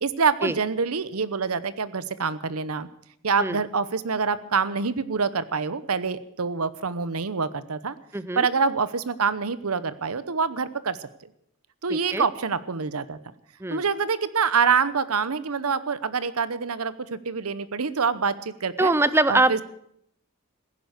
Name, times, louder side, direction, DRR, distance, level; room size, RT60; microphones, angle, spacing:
voice 1, 0.0-2.9 3.2-8.0 8.4-11.3 11.8-13.2 13.7-18.9 19.3-19.6, right 5 dB, 85° right, 15 dB, 0.9 m, -26 dB
voice 2, 8.1-8.5 12.1-12.3 13.6-13.8 18.8-19.6, right 2 dB, 10° right, 16 dB, 0.5 m, -22 dB
15.5 x 11.0 x 8.2 m, 0.72 s
head